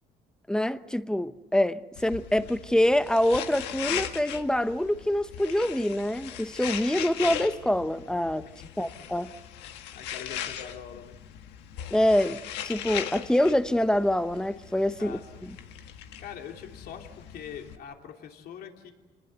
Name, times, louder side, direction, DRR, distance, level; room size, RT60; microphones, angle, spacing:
voice 1, 0.5-8.5 8.8-9.3 11.9-15.5, left 1 dB, 5° left, 1.0 m, -25 dB
sound 1, 2.0-17.8, left 10 dB, 90° left, 1.6 m, -39 dB
voice 2, 9.6-11.2 15.0-15.7 16.2-18.9, left 8 dB, 65° left, 3.1 m, -43 dB
28.0 x 20.0 x 8.1 m
cardioid pair, 110°, 17 cm